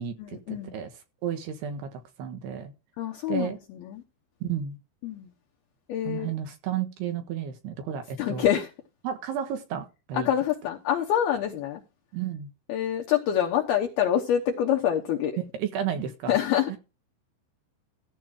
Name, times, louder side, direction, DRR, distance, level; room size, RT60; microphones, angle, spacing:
voice 1, 0.0-2.7 3.3-3.6 4.4-4.8 6.0-8.5 9.0-10.3 12.1-12.5 15.4-16.4 16.7-16.8, right 9 dB, 70° right, 2.9 m, -32 dB
voice 2, 3.0-3.5 3.8-4.0 5.0-5.3 5.9-6.3 8.2-8.7 10.2-11.8 12.7-15.3 16.3-16.8, left 10 dB, 70° left, 2.6 m, -26 dB
14.5 x 4.8 x 6.4 m
omnidirectional pair, 5.6 m